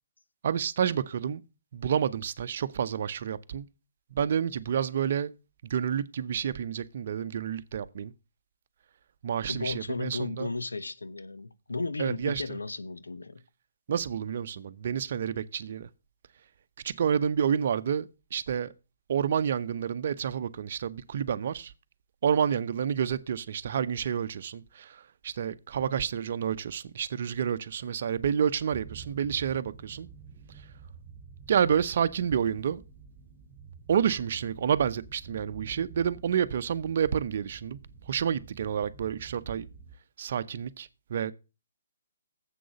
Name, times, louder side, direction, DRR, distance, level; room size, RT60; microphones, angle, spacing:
voice 1, 0.4-1.4 1.7-3.7 4.1-5.3 5.6-8.1 9.2-10.5 12.0-12.4 13.9-15.9 16.8-18.7 19.1-21.7 22.2-30.1 31.5-32.8 33.9-37.8 38.1-39.7 40.2-41.3, right 8 dB, 55° right, 0.7 m, -29 dB
voice 2, 9.5-13.4, left 3 dB, 80° left, 0.8 m, -34 dB
sound 1, 28.7-40.0, right 5 dB, 20° right, 1.9 m, -49 dB
7.6 x 6.2 x 6.9 m
figure-of-eight pair, 135°, 0 cm